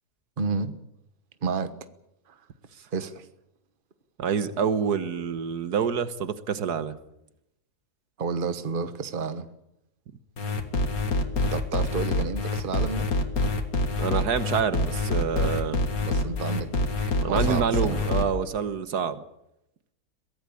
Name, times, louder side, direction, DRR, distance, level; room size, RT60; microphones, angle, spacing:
voice 1, 0.4-0.7 1.4-1.7 2.3-2.4 2.9-3.3 8.2-9.5 11.5-13.1 16.0-16.7 17.0-18.0, right 5 dB, 35° right, 1.4 m, -31 dB
voice 2, 4.2-7.0 14.0-15.8 17.2-19.2, right 7 dB, 80° right, 1.8 m, -27 dB
sound 1, 10.4-18.2, left 2 dB, 65° left, 2.5 m, -26 dB
23.0 x 17.0 x 8.5 m
omnidirectional pair, 1.7 m